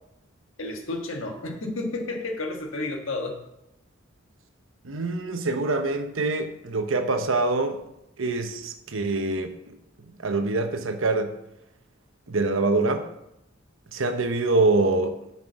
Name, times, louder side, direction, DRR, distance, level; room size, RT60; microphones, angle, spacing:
voice 1, 0.6-3.4, left 2 dB, 85° left, 3 dB, 1.5 m, -31 dB
voice 2, 4.8-7.8 8.2-9.7 10.2-11.3 12.3-13.1 13.9-15.2, right 3 dB, 80° right, 7 dB, 1.0 m, -25 dB
7.8 x 5.9 x 6.0 m, 0.85 s
head